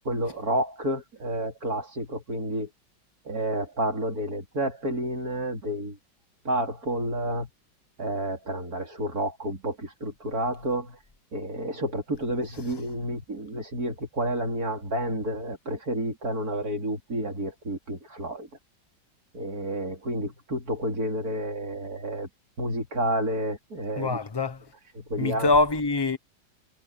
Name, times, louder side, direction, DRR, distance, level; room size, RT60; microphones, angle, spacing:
voice 1, 0.0-2.7 3.2-6.0 6.4-7.5 8.0-11.0 11.3-18.5 19.3-22.3 22.6-24.2 24.9-25.6, right 1 dB, 50° right, 4.4 m, -30 dB
voice 2, 24.0-24.6 25.2-26.2, left 3 dB, 20° left, 0.8 m, -24 dB
omnidirectional pair, 2.0 m